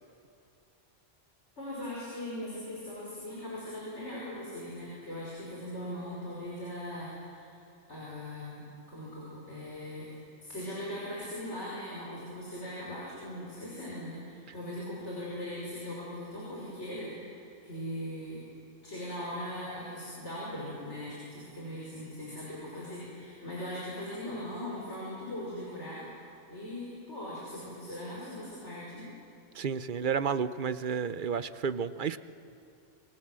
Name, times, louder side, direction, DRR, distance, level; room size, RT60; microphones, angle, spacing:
voice 1, 1.6-7.5 7.9-18.4 18.8-26.0 26.5-29.1, left 1 dB, 65° left, -6 dB, 6.0 m, -40 dB
voice 2, 29.5-32.2, right 6 dB, 50° right, 13 dB, 0.8 m, -31 dB
28.0 x 23.0 x 7.6 m, 2.7 s
omnidirectional pair, 1.3 m